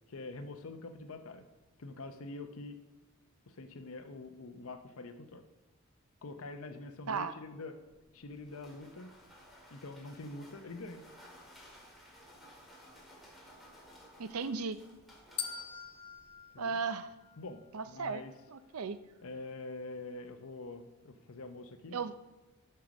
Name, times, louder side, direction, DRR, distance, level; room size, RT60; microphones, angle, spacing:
voice 1, 0.1-1.5 1.8-2.8 3.5-5.4 6.2-7.7 8.1-9.1 9.7-11.0 16.5-16.8 17.4-18.3 19.2-22.0, left 2 dB, 75° left, 7 dB, 0.7 m, -45 dB
sound 1, 7.8-16.5, equal, ahead, 2.1 m, -57 dB
voice 2, 14.2-14.8 16.6-17.1 17.7-18.2 18.5-19.0 21.9-22.1, right 5 dB, 85° right, 12 dB, 0.6 m, -35 dB
sound 2, 15.4-17.6, left 7 dB, 25° left, 0.4 m, -43 dB
7.7 x 6.5 x 6.0 m, 1.1 s
head